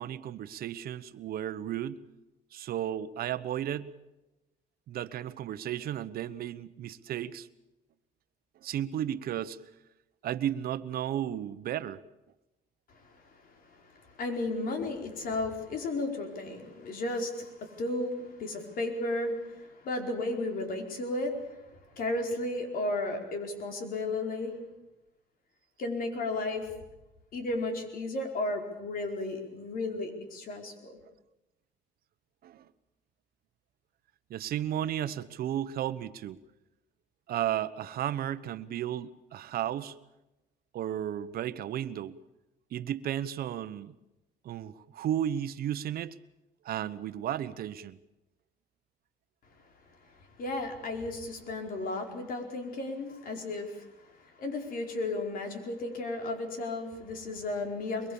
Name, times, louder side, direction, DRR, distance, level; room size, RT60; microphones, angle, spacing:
voice 1, 0.0-2.0 2.5-3.9 4.9-7.5 8.6-9.6 10.2-12.0 32.4-32.7 34.3-36.4 37.3-39.9 40.7-42.2 42.7-43.9 44.4-46.1 46.6-48.0, right 11 dB, 60° right, 14 dB, 1.1 m, -34 dB
voice 2, 12.9-21.6 22.0-24.6 25.8-26.7 27.3-31.0 50.4-58.1, left 2 dB, 60° left, 3 dB, 4.8 m, -34 dB
23.5 x 22.5 x 7.2 m, 0.98 s
cardioid pair, 110°, 17 cm